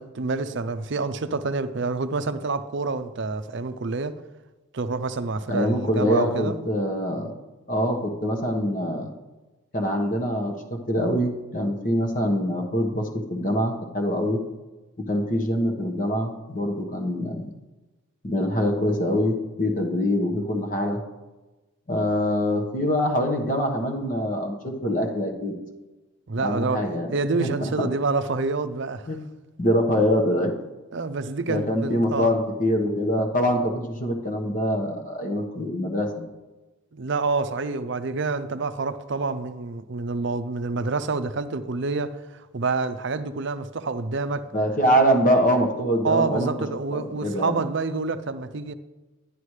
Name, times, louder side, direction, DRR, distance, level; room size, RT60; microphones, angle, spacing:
voice 1, 0.0-4.2 4.7-6.6 26.3-26.8 27.1-29.1 30.9-32.3 36.9-44.5 46.0-48.7, right 3 dB, 55° right, 0.5 m, -27 dB
voice 2, 5.5-7.3 7.7-9.1 9.7-14.4 15.0-17.5 18.2-21.0 21.9-25.6 26.4-27.1 27.4-27.9 29.1-29.2 29.6-30.5 31.5-36.3 44.5-46.5 46.9-47.6, equal, 40° left, 1.3 m, -24 dB
11.0 x 10.5 x 3.3 m
head